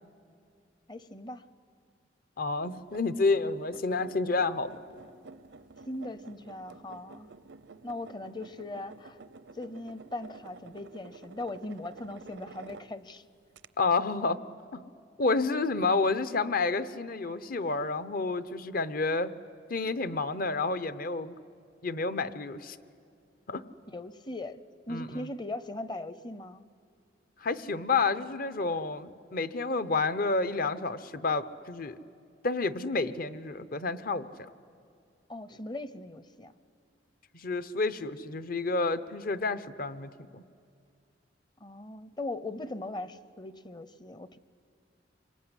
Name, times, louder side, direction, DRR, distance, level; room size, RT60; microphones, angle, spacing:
voice 1, 0.9-1.5 5.9-7.3 7.8-9.2 9.5-13.2 23.9-26.6 35.3-36.5 41.6-44.4, left 2 dB, 25° left, 14 dB, 0.8 m, -39 dB
voice 2, 2.4-4.7 13.8-14.4 14.7-14.8 15.2-19.3 19.7-21.3 21.8-22.8 23.5-23.6 24.9-25.3 27.4-32.0 32.4-34.5 37.3-40.4, left 3 dB, 50° left, 13 dB, 0.9 m, -30 dB
sound 1, 2.7-13.2 13.6-13.7, right 4 dB, 75° right, 0.7 m, -51 dB
26.5 x 22.5 x 9.9 m, 2.4 s
head